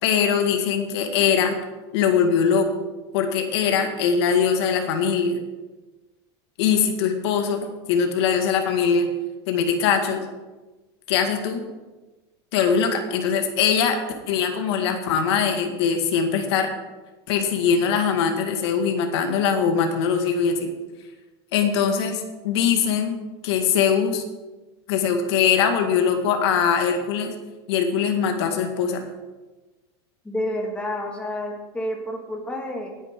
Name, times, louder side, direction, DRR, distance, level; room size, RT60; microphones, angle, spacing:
voice 1, 0.0-1.6 1.9-2.7 3.1-5.4 6.6-9.1 9.5-10.3 11.1-11.7 12.5-14.0 14.3-16.7 17.3-20.7 21.5-23.2 23.4-24.2 24.9-27.3 27.7-29.0, left 7 dB, 70° left, 5 dB, 1.9 m, -22 dB
voice 2, 30.2-32.9, left 1 dB, 10° left, 0 dB, 2.0 m, -29 dB
18.0 x 9.4 x 3.8 m, 1.2 s
supercardioid pair, 140°, 14 cm